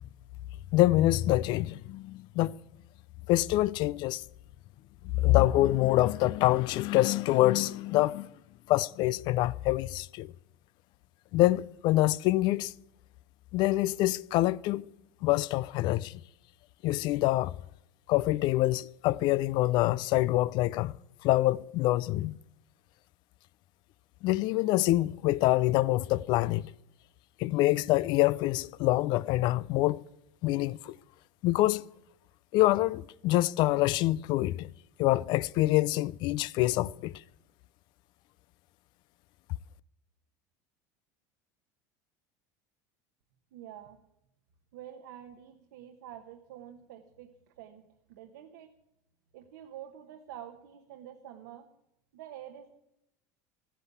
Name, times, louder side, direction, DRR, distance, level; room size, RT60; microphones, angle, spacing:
voice 1, 0.7-2.5 3.3-4.2 5.1-8.3 8.7-10.3 11.3-12.7 13.5-14.9 15.2-16.2 16.8-17.5 18.1-20.9 21.2-22.4 24.2-26.7 27.4-30.0 30.4-31.0 31.4-31.8 32.5-34.7 35.0-37.1, left 17 dB, 60° left, 0.5 m, -26 dB
voice 2, 43.5-44.0 44.7-47.8 48.1-48.7 49.3-51.7 52.1-52.8, right 10 dB, 85° right, 1.3 m, -47 dB
13.5 x 10.5 x 8.3 m
supercardioid pair, 105°, 9 cm